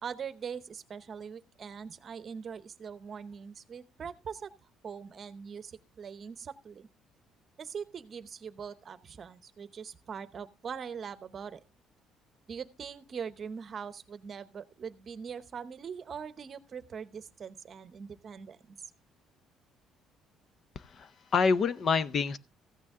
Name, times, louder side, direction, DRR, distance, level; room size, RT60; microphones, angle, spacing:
voice 1, 0.0-4.5 4.8-6.9 7.6-11.6 12.5-18.8, right 6 dB, 40° right, 0.8 m, -42 dB
voice 2, 20.8-22.4, left 5 dB, 40° left, 0.6 m, -27 dB
15.0 x 9.0 x 3.7 m
cardioid pair, 135°, 0 cm